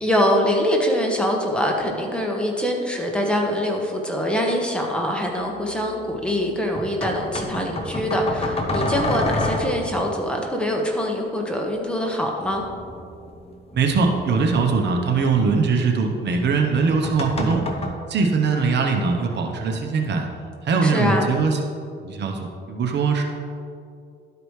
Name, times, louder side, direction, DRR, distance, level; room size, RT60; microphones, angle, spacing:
voice 1, 0.0-12.6 20.8-21.3, equal, 5° left, 0 dB, 1.3 m, -24 dB
sound 1, 5.3-5.4 6.7-10.1 12.4-15.1 16.7-17.9, left 1 dB, 30° left, 1.0 m, -29 dB
voice 2, 13.7-17.7 18.1-20.3 20.6-21.6 22.0-23.2, right 4 dB, 60° right, 3 dB, 0.9 m, -21 dB
12.0 x 4.9 x 3.2 m, 2.4 s
cardioid pair, 90°, 20 cm